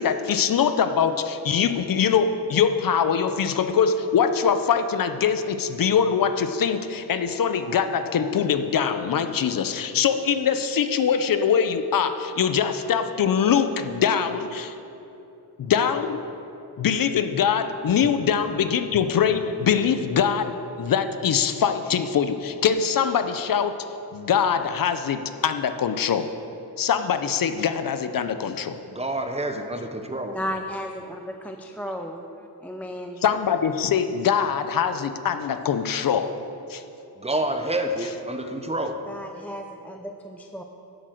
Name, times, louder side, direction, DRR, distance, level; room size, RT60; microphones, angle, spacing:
voice 1, 0.0-14.7 15.6-16.2 16.8-20.5 20.8-23.7 24.1-26.3 26.8-28.8 33.2-36.3 36.7-36.8, left 7 dB, 55° left, 9 dB, 0.7 m, -23 dB
voice 2, 28.9-30.4 37.2-39.1, right 1 dB, 15° right, 6 dB, 0.8 m, -28 dB
voice 3, 30.3-30.9 31.2-32.2 32.6-33.2 39.1-40.6, equal, 5° left, 4 dB, 0.4 m, -34 dB
11.0 x 7.9 x 6.4 m, 2.9 s
wide cardioid pair, 130°, 41 cm